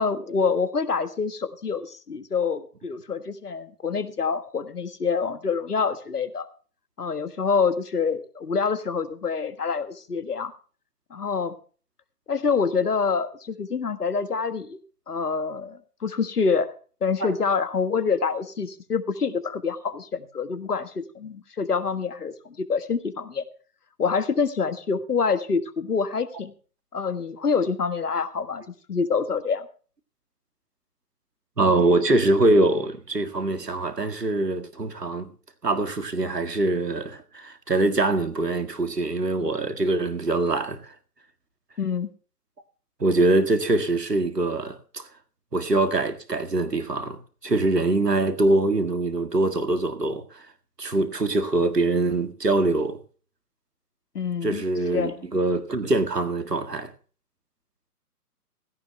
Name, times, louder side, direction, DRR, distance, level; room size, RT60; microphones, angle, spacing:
voice 1, 0.0-6.5 7.0-10.5 11.1-11.5 12.3-14.8 15.1-16.7 17.0-23.4 24.0-26.5 26.9-29.7 41.8-42.1 54.1-54.6 54.9-55.1, left 5 dB, 75° left, 1.7 m, -26 dB
voice 2, 31.6-35.3 35.6-40.9 43.0-45.1 45.5-50.5 50.8-53.0 54.4-56.9, right 2 dB, 85° right, 1.9 m, -23 dB
17.0 x 16.0 x 2.2 m
figure-of-eight pair, 135°, 47 cm